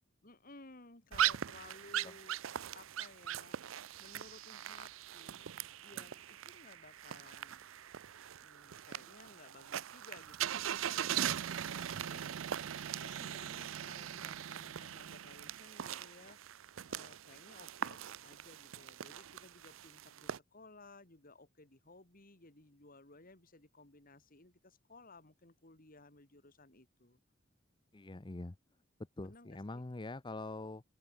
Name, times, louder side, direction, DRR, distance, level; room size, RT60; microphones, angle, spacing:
voice 1, 0.2-2.4 2.7-5.5 5.8-7.7 8.3-12.6 13.0-27.2 29.2-29.8, left 2 dB, 45° left, 3.2 m, -58 dB
sound 1, 1.1-20.4, right 10 dB, 80° right, 0.5 m, -40 dB
voice 2, 27.9-28.5 29.2-30.8, left 2 dB, 25° left, 0.7 m, -44 dB
open air
head